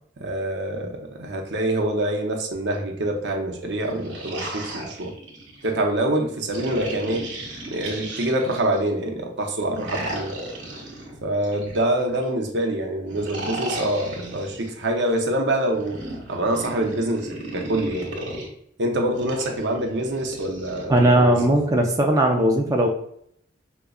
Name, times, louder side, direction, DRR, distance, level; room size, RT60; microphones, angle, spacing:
voice 1, 0.2-5.1 5.6-7.3 7.6-10.3 11.2-16.0 16.3-18.1 18.8-21.5, right 1 dB, 70° right, 2 dB, 0.7 m, -25 dB
sound 1, 3.8-5.7 6.5-8.9 9.7-12.3 13.1-14.7 15.7-18.5 19.2-20.8, right 1 dB, 85° right, 1.2 m, -35 dB
voice 2, 20.9-22.9, right 1 dB, 20° right, 0 dB, 0.4 m, -18 dB
4.9 x 2.2 x 2.3 m, 0.68 s
head